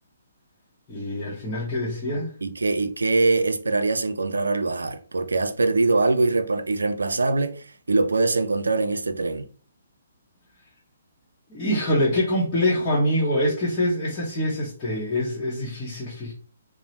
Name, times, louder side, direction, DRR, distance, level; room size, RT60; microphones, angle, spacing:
voice 1, 0.9-2.3 11.5-16.3, left 1 dB, 20° left, 0.9 m, -25 dB
voice 2, 2.4-9.5, right 3 dB, 75° right, 0.3 m, -23 dB
2.8 x 2.0 x 2.9 m
figure-of-eight pair, 135°, 0 cm